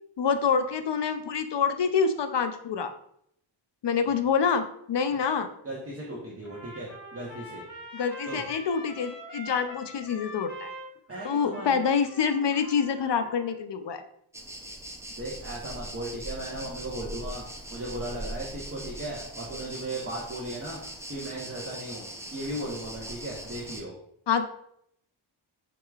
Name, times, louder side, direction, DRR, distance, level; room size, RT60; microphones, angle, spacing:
voice 1, 0.2-2.9 3.8-5.5 7.9-10.7 11.2-14.0 24.3-24.4, left 6 dB, 65° left, 9 dB, 0.5 m, -26 dB
voice 2, 5.6-7.6 8.3-8.5 11.1-11.8 15.2-17.4 17.7-20.8 21.1-22.1 22.3-23.9, right 1 dB, 30° right, -5 dB, 0.9 m, -36 dB
Trumpet, 6.4-13.5, equal, 40° left, 1.5 m, -44 dB
sound 1, 14.3-23.8, right 1 dB, 5° right, 0.4 m, -41 dB
4.8 x 4.6 x 2.3 m, 0.71 s
wide cardioid pair, 100°, 47 cm